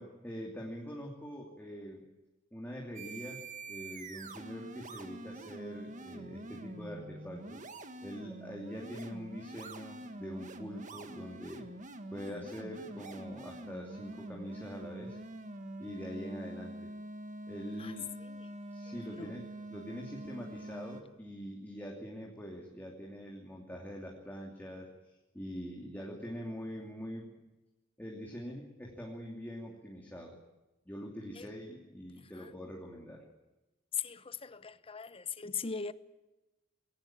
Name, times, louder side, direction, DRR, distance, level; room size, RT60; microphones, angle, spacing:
voice 1, 0.0-2.0 2.5-3.4 3.7-7.6 8.0-11.7 12.1-15.2 15.8-16.9 17.5-18.0 18.7-27.3 28.0-30.4 30.9-33.2, equal, 10° left, 2.8 m, -44 dB
sound 1, 3.0-21.0, right 1 dB, 40° right, 1.7 m, -45 dB
voice 2, 33.9-35.9, left 6 dB, 30° left, 0.8 m, -39 dB
21.0 x 17.5 x 8.9 m
head